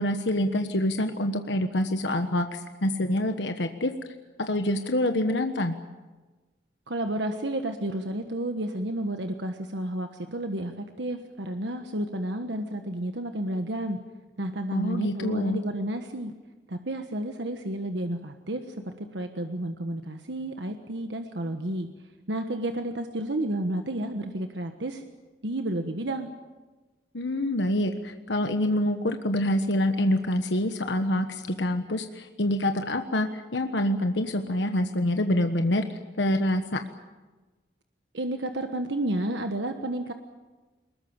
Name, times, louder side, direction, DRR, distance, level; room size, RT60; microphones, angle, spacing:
voice 1, 0.0-3.9 4.4-5.7 14.7-15.6 27.1-36.8, left 1 dB, 85° left, 6 dB, 1.3 m, -26 dB
voice 2, 6.9-14.0 14.4-16.3 16.7-21.9 22.3-25.0 25.4-26.3 38.1-40.1, right 1 dB, 90° right, 6 dB, 1.4 m, -31 dB
23.5 x 21.0 x 8.8 m, 1.2 s
head